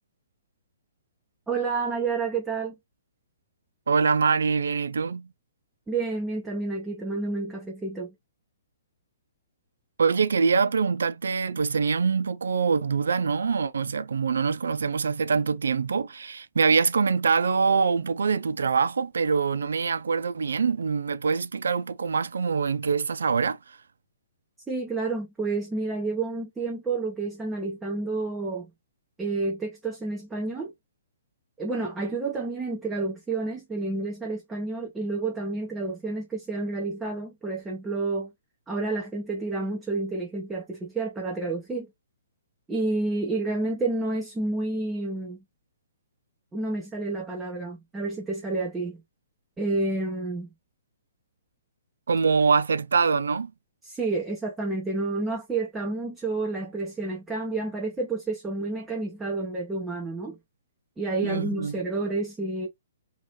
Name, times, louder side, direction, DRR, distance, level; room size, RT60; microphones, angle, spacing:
voice 1, 1.5-2.8 5.9-8.1 24.7-28.7 29.2-30.7 31.6-38.3 38.7-41.9 42.7-45.4 46.5-49.0 49.6-50.5 53.8-60.4 61.0-62.7, right 3 dB, 10° right, 0.9 m, -30 dB
voice 2, 3.9-5.3 10.0-23.8 52.1-53.5 61.2-61.7, right 5 dB, 65° right, 0.4 m, -24 dB
3.0 x 2.8 x 3.0 m
figure-of-eight pair, 125°, 0 cm